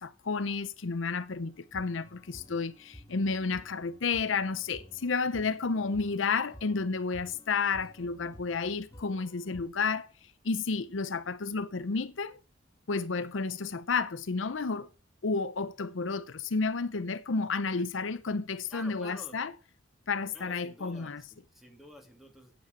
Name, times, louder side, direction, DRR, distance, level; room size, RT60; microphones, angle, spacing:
voice 1, 0.0-10.1 10.4-12.4 12.9-14.9 15.2-19.5 20.1-21.2, left 4 dB, 80° left, 0.7 m, -31 dB
sound 1, 1.4-9.6, equal, 15° left, 1.4 m, -53 dB
voice 2, 18.7-19.5 20.3-22.5, equal, ahead, 2.5 m, -49 dB
9.3 x 7.9 x 7.2 m
head